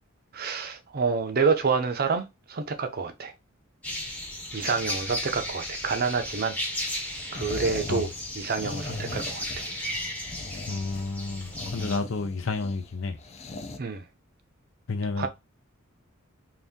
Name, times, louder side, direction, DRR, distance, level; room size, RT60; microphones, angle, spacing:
voice 1, 0.3-3.3 4.5-6.6 7.3-8.1 8.3-9.7 13.8-14.0 15.2-15.3, right 5 dB, 50° right, 0.6 m, -28 dB
sound 1, 3.8-12.0, left 1 dB, 5° left, 0.8 m, -35 dB
sound 2, 7.1-13.8, left 3 dB, 30° left, 0.4 m, -39 dB
voice 2, 10.7-13.2 14.9-15.3, left 3 dB, 70° left, 0.6 m, -30 dB
2.7 x 2.6 x 3.5 m
head